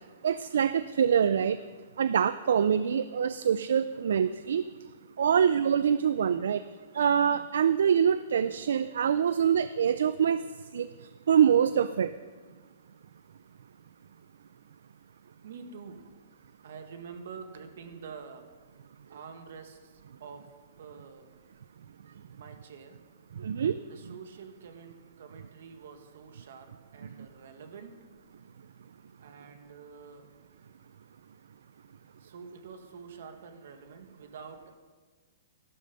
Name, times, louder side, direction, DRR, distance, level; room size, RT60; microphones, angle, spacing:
voice 1, 0.2-1.6 2.0-4.6 5.2-6.6 6.9-10.4 10.7-10.9 11.3-12.1 23.4-23.8, right 8 dB, 80° right, 14 dB, 0.4 m, -25 dB
voice 2, 15.4-16.1 16.6-18.5 19.1-20.5 20.8-21.4 22.3-23.0 23.9-28.0 29.2-30.3 32.2-34.8, right 5 dB, 65° right, 7 dB, 1.7 m, -47 dB
14.0 x 12.0 x 5.5 m, 1.4 s
hypercardioid pair, 170°, 0 cm